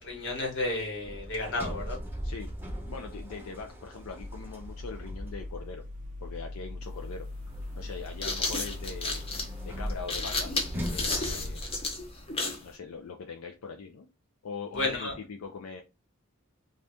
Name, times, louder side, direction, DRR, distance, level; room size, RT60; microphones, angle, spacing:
voice 1, 0.0-2.0 14.7-15.2, left 2 dB, 55° left, 1.2 m, -32 dB
Sliding door, 1.0-5.9 7.5-12.4, equal, 10° right, 0.7 m, -40 dB
voice 2, 2.9-5.8 6.2-7.3 7.8-10.5 10.9-11.6 12.6-14.1 14.4-15.8, left 5 dB, 85° left, 0.5 m, -41 dB
sound 1, 4.2-11.6, left 2 dB, 35° right, 0.4 m, -41 dB
sound 2, 6.8-6.9 7.9-12.7, left 3 dB, 25° left, 0.6 m, -32 dB
2.6 x 2.4 x 3.4 m
head